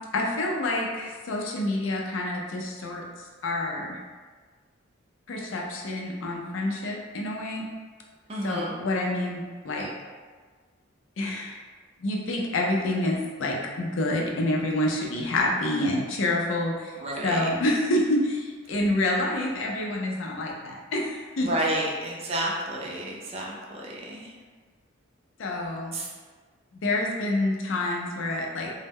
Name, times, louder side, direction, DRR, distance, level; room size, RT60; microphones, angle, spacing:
voice 1, 0.1-3.0 3.4-4.0 5.3-7.6 8.4-9.9 11.2-11.6 12.0-16.9 17.2-21.5 25.4-25.9 26.7-28.7, left 1 dB, 65° left, -1 dB, 0.4 m, -27 dB
voice 2, 8.3-8.8 9.7-9.9 17.0-17.5 21.4-24.3 25.9-26.1, right 1 dB, 30° right, -3 dB, 0.3 m, -31 dB
2.0 x 2.0 x 3.4 m, 1.5 s
head